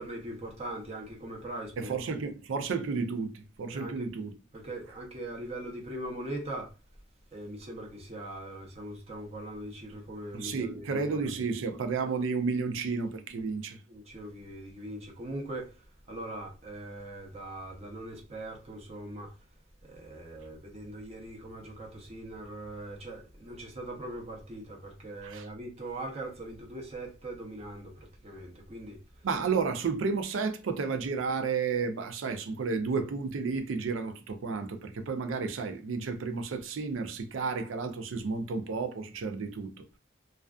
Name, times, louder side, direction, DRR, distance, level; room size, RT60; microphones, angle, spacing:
voice 1, 0.0-2.0 3.7-4.1 4.5-6.7 7.3-11.3 13.9-15.8 16.1-19.3 19.8-29.0, right 1 dB, 35° right, 0.7 m, -41 dB
voice 2, 1.8-4.3 10.3-13.8 25.2-25.5 29.2-40.0, right 4 dB, 85° right, 0.4 m, -32 dB
2.3 x 2.3 x 2.3 m
head